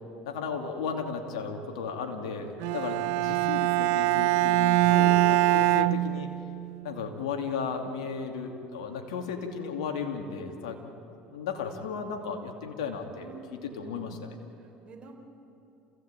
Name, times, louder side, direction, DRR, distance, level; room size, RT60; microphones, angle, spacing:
voice 1, 0.2-6.3 6.8-10.8 11.3-13.3 13.7-14.2, left 5 dB, 90° left, 3 dB, 2.7 m, -35 dB
Bowed string instrument, 2.6-6.7, right 17 dB, 75° right, 0.7 m, -23 dB
voice 2, 5.5-6.1 13.2-14.2 14.6-15.2, right 5 dB, 30° right, 0 dB, 4.3 m, -48 dB
27.5 x 16.5 x 9.0 m, 2.9 s
supercardioid pair, 90°, 3 cm